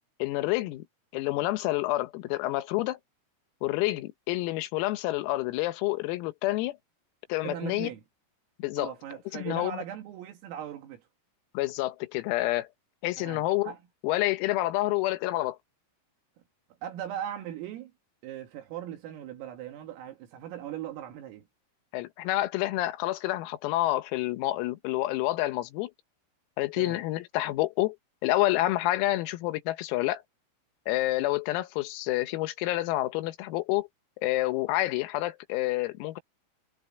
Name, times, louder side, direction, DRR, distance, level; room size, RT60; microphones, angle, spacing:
voice 1, 0.2-0.8 1.1-3.0 3.6-6.8 7.3-7.9 8.6-8.9 9.3-9.8 11.6-12.7 13.0-13.7 14.0-15.6 21.9-25.9 26.6-28.0 28.2-30.2 30.9-33.9 34.2-36.2, left 17 dB, 85° left, 3.9 m, -28 dB
voice 2, 7.4-8.0 8.8-11.1 13.2-13.8 16.8-17.9 18.2-21.5 26.7-27.0, right 10 dB, 80° right, 4.7 m, -39 dB
omnidirectional pair, 6.0 m